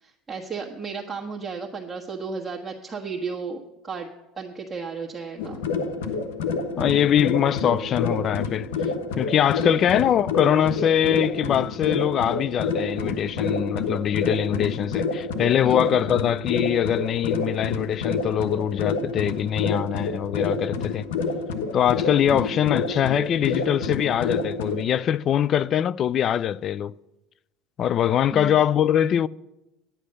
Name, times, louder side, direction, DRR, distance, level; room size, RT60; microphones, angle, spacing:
voice 1, 0.0-4.1 4.4-5.7 9.8-10.0 15.6-16.1 22.3-22.5 28.3-28.6, right 5 dB, 20° right, 1.4 m, -34 dB
sound 1, 5.4-24.8, left 4 dB, 85° left, 1.0 m, -28 dB
voice 2, 6.8-8.7 9.2-21.1 21.7-26.9 27.8-29.3, left 10 dB, 45° left, 0.4 m, -23 dB
9.9 x 9.9 x 6.6 m
supercardioid pair, 95°, 0 cm